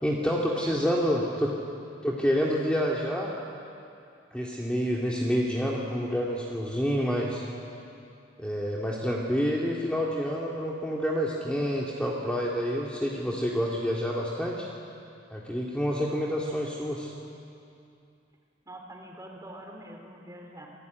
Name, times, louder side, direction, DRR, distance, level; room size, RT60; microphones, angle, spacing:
voice 1, 0.0-1.5 2.0-3.3 4.3-7.4 8.4-14.7 15.3-17.1, equal, 5° left, -3 dB, 2.2 m, -28 dB
voice 2, 0.5-1.3 18.7-20.7, right 1 dB, 20° right, 1 dB, 3.9 m, -45 dB
28.0 x 18.5 x 9.3 m, 2.5 s
head